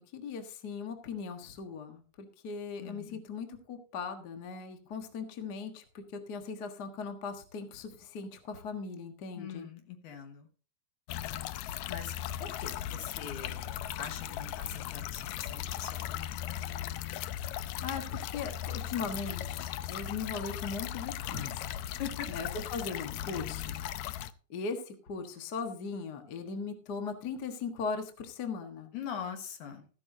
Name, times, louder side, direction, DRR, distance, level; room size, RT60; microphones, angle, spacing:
voice 1, 0.1-9.7 17.8-22.0 22.3-23.8 24.5-28.9, left 5 dB, 50° left, 5 dB, 1.3 m, -39 dB
voice 2, 2.8-3.2 9.4-10.5 11.9-12.1 12.4-13.6 14.0-16.6 22.0-22.3 28.9-29.9, left 8 dB, 65° left, 6 dB, 2.8 m, -42 dB
sound 1, 11.1-24.3, left 11 dB, 85° left, 1.6 m, -38 dB
14.5 x 11.5 x 2.8 m, 0.37 s
omnidirectional pair, 3.9 m